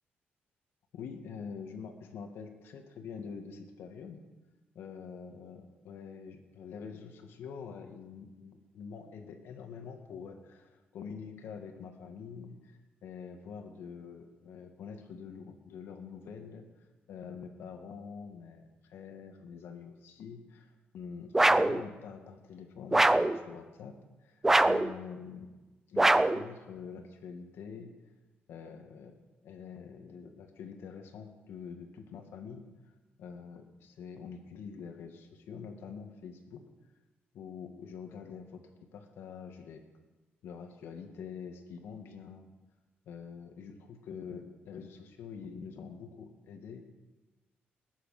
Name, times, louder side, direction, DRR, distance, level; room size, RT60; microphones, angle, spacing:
voice 1, 0.9-4.2 4.7-16.7 17.1-25.5 25.9-27.9 28.5-29.1 29.4-32.7 33.2-36.6 37.3-38.6 38.9-39.8 40.4-42.5 43.1-46.8, left 6 dB, 80° left, 5 dB, 2.1 m, -45 dB
sound 1, 21.3-21.8 22.9-23.4 24.4-24.9 26.0-26.4, right 2 dB, 10° right, 0.4 m, -23 dB
20.0 x 10.0 x 6.7 m, 1.2 s
cardioid pair, 165°, 4 cm